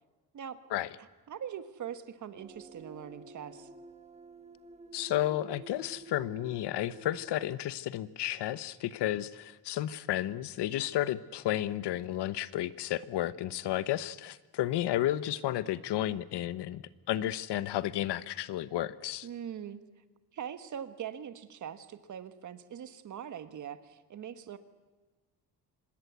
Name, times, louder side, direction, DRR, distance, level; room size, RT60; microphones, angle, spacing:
voice 1, 1.3-3.7 19.2-19.8 20.3-24.6, right 9 dB, 45° right, 11 dB, 1.5 m, -42 dB
sound 1, 2.4-7.6, right 3 dB, 15° right, 1.0 m, -51 dB
voice 2, 4.9-16.8 17.1-19.3, left 13 dB, 75° left, 16 dB, 1.0 m, -32 dB
25.5 x 21.0 x 8.2 m, 1.3 s
cardioid pair, 175°, 41 cm